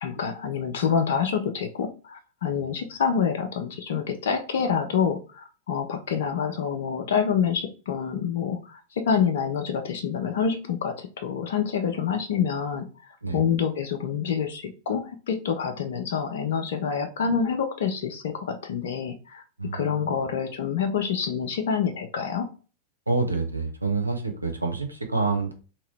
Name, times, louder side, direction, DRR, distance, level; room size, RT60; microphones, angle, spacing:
voice 1, 0.0-19.4 19.7-22.5, left 7 dB, 60° left, 6 dB, 0.5 m, -27 dB
voice 2, 19.6-20.2 23.1-25.5, right 3 dB, 85° right, 4 dB, 0.6 m, -28 dB
2.9 x 2.7 x 3.2 m, 0.36 s
figure-of-eight pair, 90°, 0 cm